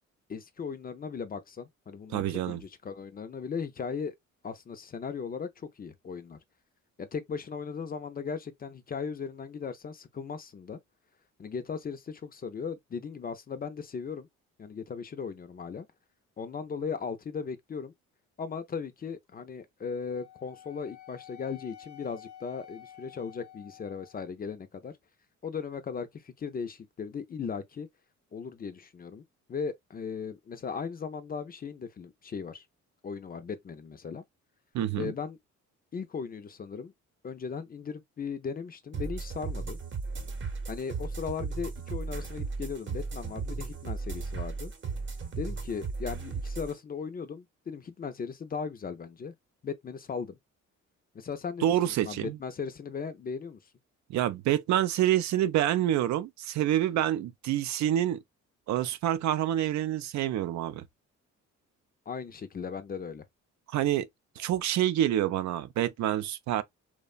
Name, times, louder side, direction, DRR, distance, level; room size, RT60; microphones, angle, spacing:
voice 1, 0.3-4.1 4.4-6.4 7.0-10.8 11.4-14.3 14.6-15.9 16.4-17.9 18.4-24.9 25.4-27.9 28.3-29.2 29.5-32.6 33.0-34.2 35.0-35.4 35.9-36.9 37.2-39.8 40.7-44.7 45.4-49.3 49.6-50.4 51.1-53.6 62.1-63.3, left 6 dB, 30° left, 0.5 m, -37 dB
voice 2, 2.1-2.6 34.7-35.1 51.6-52.4 54.1-58.2 58.7-60.8 63.7-64.1 64.4-66.6, right 12 dB, 70° right, 0.4 m, -27 dB
Wind instrument woodwind instrument, 20.1-24.3, left 11 dB, 70° left, 0.8 m, -50 dB
sound 1, 38.9-46.7, right 4 dB, 40° right, 0.8 m, -36 dB
2.9 x 2.1 x 2.3 m
cardioid pair, 90°, 30 cm